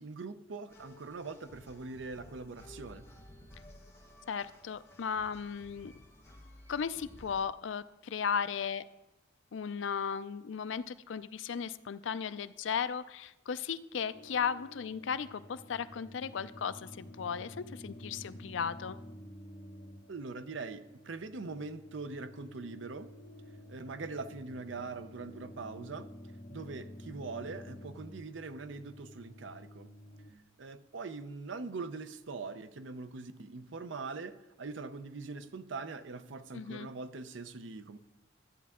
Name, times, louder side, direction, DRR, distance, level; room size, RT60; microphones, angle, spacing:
voice 1, 0.0-3.0 20.1-23.1 23.7-26.1 26.5-29.9 30.6-38.0, right 4 dB, 70° right, 11 dB, 0.6 m, -42 dB
sound 1, 0.7-7.4, left 1 dB, 15° left, 1.3 m, -55 dB
voice 2, 4.3-5.9 6.7-8.8 9.5-19.0 36.5-36.9, left 6 dB, 70° left, 14 dB, 0.4 m, -36 dB
sound 2, 14.1-30.3, equal, 50° left, 1.8 m, -50 dB
13.0 x 9.2 x 3.6 m, 0.95 s
head